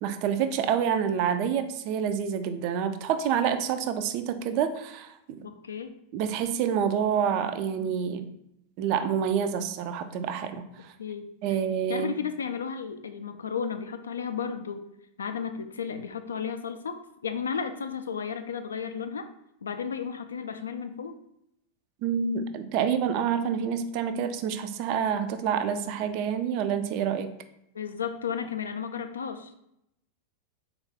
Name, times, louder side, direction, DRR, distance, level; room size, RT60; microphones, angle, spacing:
voice 1, 0.0-5.5 6.1-8.3 8.8-10.9 11.4-12.1 22.0-27.3, right 8 dB, 45° right, 9 dB, 0.3 m, -28 dB
voice 2, 5.4-5.9 11.0-11.3 11.9-14.9 15.2-19.3 19.6-21.2 27.7-29.5, left 6 dB, 70° left, 8 dB, 0.3 m, -33 dB
3.8 x 2.3 x 3.4 m, 0.79 s
figure-of-eight pair, 90°, 0 cm